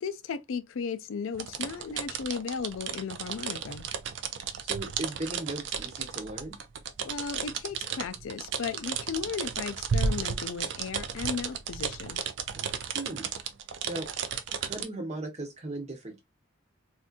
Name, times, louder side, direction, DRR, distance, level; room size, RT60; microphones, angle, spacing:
voice 1, 0.0-3.8 7.0-12.2, left 6 dB, 75° left, 0.4 m, -35 dB
sound 1, 1.3-14.9, right 6 dB, 60° right, 0.4 m, -34 dB
voice 2, 4.6-6.5 12.5-12.7 12.9-13.3 13.9-14.1 14.6-16.2, right 2 dB, 30° right, 0.9 m, -37 dB
3.6 x 2.6 x 2.4 m
head